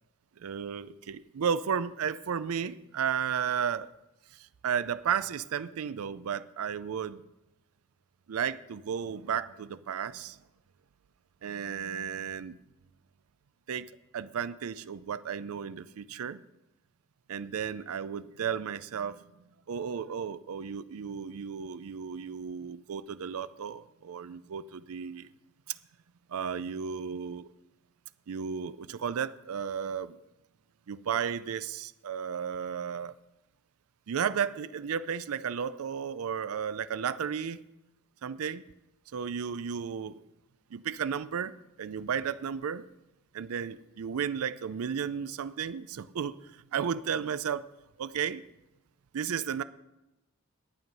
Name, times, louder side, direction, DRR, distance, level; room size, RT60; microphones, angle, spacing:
voice 1, 0.4-3.9 4.6-7.2 8.3-10.4 11.4-12.6 13.7-13.9 14.1-16.4 17.3-19.2 19.7-25.3 25.7-25.8 26.3-27.5 28.3-30.2 30.9-33.1 34.1-37.6 38.2-38.6 39.1-40.2 40.7-42.9 43.3-46.4 46.7-47.7 48.0-48.4 49.1-49.6, right 7 dB, 80° right, 14 dB, 0.4 m, -33 dB
11.5 x 9.3 x 5.4 m, 0.96 s
head